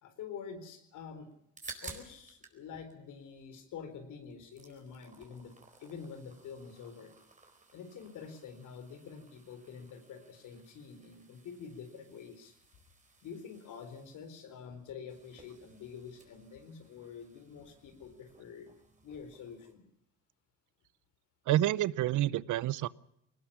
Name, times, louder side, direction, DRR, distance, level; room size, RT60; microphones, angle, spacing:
voice 1, 0.0-1.3 1.8-5.5 5.8-7.1 7.7-12.5 13.2-18.7 19.0-19.8, left 6 dB, 80° left, 8 dB, 4.2 m, -47 dB
sound 1, 1.3-2.6 2.9-3.9 4.2-19.7, right 3 dB, 25° right, 4.3 m, -55 dB
voice 2, 21.5-22.9, right 14 dB, 80° right, 20 dB, 0.7 m, -28 dB
21.5 x 19.5 x 7.2 m, 0.77 s
cardioid pair, 90°, 30 cm